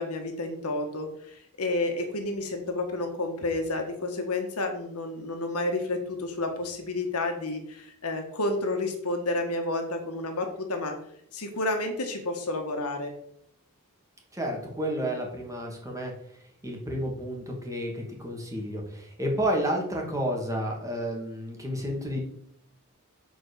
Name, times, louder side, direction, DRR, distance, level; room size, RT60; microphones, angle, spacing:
voice 1, 0.0-11.0 11.3-13.1, left 2 dB, 85° left, 4 dB, 1.6 m, -30 dB
voice 2, 14.3-16.1 16.6-22.2, equal, 15° right, 0 dB, 2.1 m, -31 dB
7.1 x 4.6 x 6.8 m, 0.70 s
head